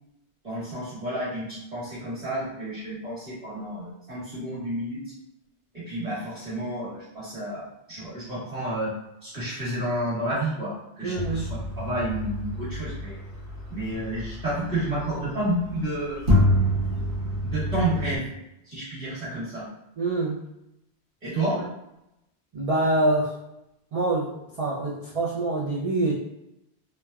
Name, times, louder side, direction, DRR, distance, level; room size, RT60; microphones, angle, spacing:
voice 1, 0.4-5.0 5.7-8.9 9.2-13.2 13.7-16.2 17.4-18.3 18.6-19.7 21.2-21.6, right 1 dB, 35° right, -11 dB, 1.4 m, -30 dB
voice 2, 11.0-11.4 20.0-20.4 22.5-23.3 23.9-26.1, right 2 dB, 50° right, -6 dB, 0.4 m, -25 dB
sound 1, 11.1-15.0 15.7-15.8 16.3-18.2, left 1 dB, 80° right, 1.1 m, -27 dB
3.2 x 2.1 x 2.3 m, 0.86 s
omnidirectional pair, 1.1 m